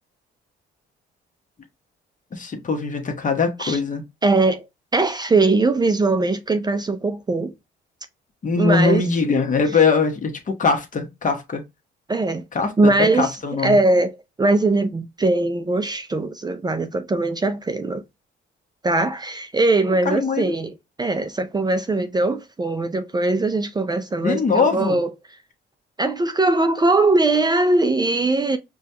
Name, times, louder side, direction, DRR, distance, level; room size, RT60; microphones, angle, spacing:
voice 1, 2.3-4.0 8.4-11.6 12.5-13.8 20.0-20.5 24.2-25.0, left 4 dB, 40° left, 1.0 m, -21 dB
voice 2, 4.2-4.7 4.9-7.5 8.6-9.0 12.1-12.4 12.8-13.4 13.6-14.1 14.4-18.0 18.8-20.7 21.0-25.1 26.0-28.6, right 2 dB, 20° right, 0.5 m, -20 dB
4.9 x 2.3 x 2.8 m
cardioid pair, 90°, 20 cm